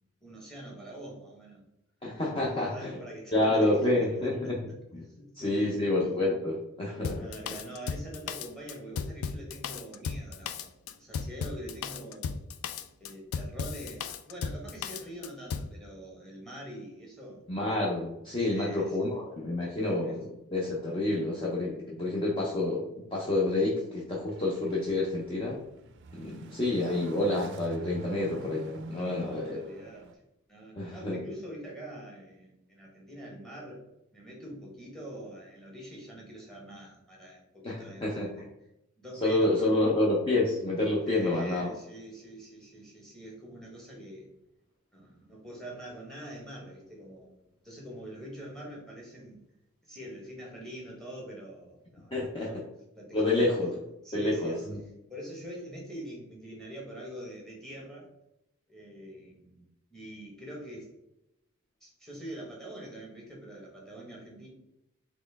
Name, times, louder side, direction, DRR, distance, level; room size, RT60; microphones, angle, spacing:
voice 1, 0.2-1.6 2.3-3.6 4.0-4.8 5.2-5.9 7.2-10.7 10.9-12.4 13.0-17.4 18.4-19.2 19.7-20.2 28.9-30.1 30.5-33.9 34.1-38.5 39.0-39.9 41.1-44.3 44.9-47.3 47.6-49.4 49.9-52.6 52.9-53.6 54.0-54.6 55.1-58.1 58.7-60.9 61.8-64.5, equal, ahead, -2 dB, 1.2 m, -44 dB
voice 2, 2.0-3.0 3.3-4.6 4.9-5.0 5.4-7.2 17.5-25.6 26.1-29.6 30.7-31.2 37.6-38.3 39.2-41.7 52.1-52.5 53.1-53.7 54.1-54.8, left 2 dB, 25° left, -4 dB, 0.6 m, -28 dB
Drum kit, 7.0-15.7, left 6 dB, 75° left, 0.3 m, -36 dB
sound 1, 24.2-30.1, right 3 dB, 55° right, 0.4 m, -46 dB
4.2 x 3.0 x 3.4 m, 0.86 s
head